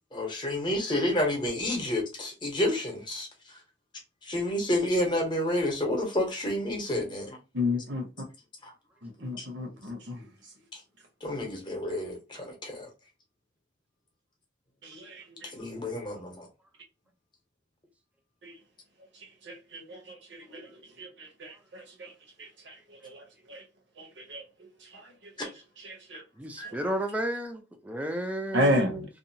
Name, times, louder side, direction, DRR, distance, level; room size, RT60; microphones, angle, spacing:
voice 1, 0.1-3.6 4.2-7.4 8.6-8.7 9.4-9.5 10.7-10.8 11.2-12.9 15.5-16.5 26.6-26.7, left 1 dB, 25° left, 0.8 m, -30 dB
voice 2, 7.5-8.0 9.0-10.2 14.8-15.2 18.4-18.5 19.5-20.2 20.5-20.6 21.0-22.1 22.4-22.8 23.0-23.2 23.5-23.6 24.0-24.4 24.9-25.0 25.4-25.5 25.8-26.2 28.5-29.1, left 1 dB, 70° right, 0.9 m, -31 dB
voice 3, 26.4-29.1, right 1 dB, 10° right, 0.4 m, -32 dB
2.5 x 2.3 x 2.7 m
head